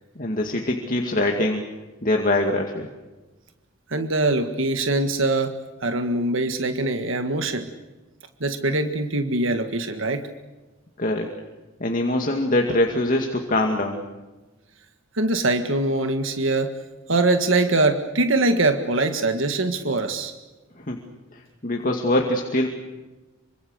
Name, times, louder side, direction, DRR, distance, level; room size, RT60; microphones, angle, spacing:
voice 1, 0.2-1.6 2.0-2.9 11.0-11.3 11.8-14.0 20.8-21.0 21.3-22.7, left 1 dB, 45° left, 2 dB, 2.3 m, -23 dB
voice 2, 3.9-5.5 5.8-7.7 8.4-10.2 15.2-16.7 17.1-20.3, right 2 dB, 75° right, 7 dB, 1.7 m, -22 dB
27.0 x 25.0 x 6.6 m, 1.2 s
head